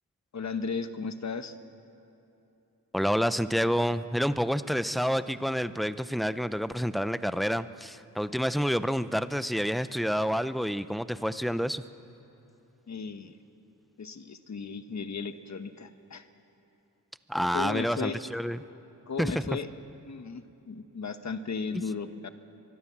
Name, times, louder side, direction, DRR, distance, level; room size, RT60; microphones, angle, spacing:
voice 1, 0.3-1.5 12.9-13.3 14.0-16.2 17.5-18.2 19.1-19.7 20.0-22.3, left 5 dB, 50° left, 10 dB, 1.2 m, -35 dB
voice 2, 2.9-11.8 17.3-18.6 19.2-19.4 21.7-21.8, equal, ahead, 13 dB, 0.6 m, -28 dB
24.0 x 21.0 x 7.4 m, 2.9 s
wide cardioid pair, 100°, 34 cm